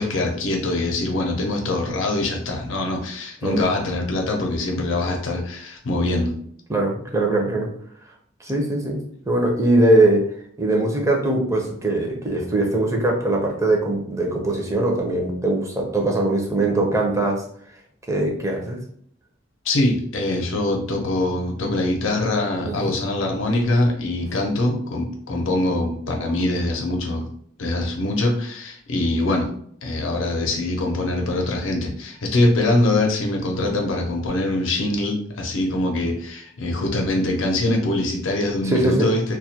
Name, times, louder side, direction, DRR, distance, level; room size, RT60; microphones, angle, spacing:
voice 1, 0.0-6.3 19.6-27.3 27.6-29.5 29.8-39.2, left 2 dB, 90° left, 1 dB, 0.6 m, -23 dB
voice 2, 6.7-7.7 8.4-9.0 9.3-10.3 10.6-17.4 18.1-18.8 22.6-22.9 38.6-39.1, right 2 dB, 15° right, 0 dB, 0.5 m, -21 dB
2.2 x 2.1 x 2.7 m, 0.63 s
head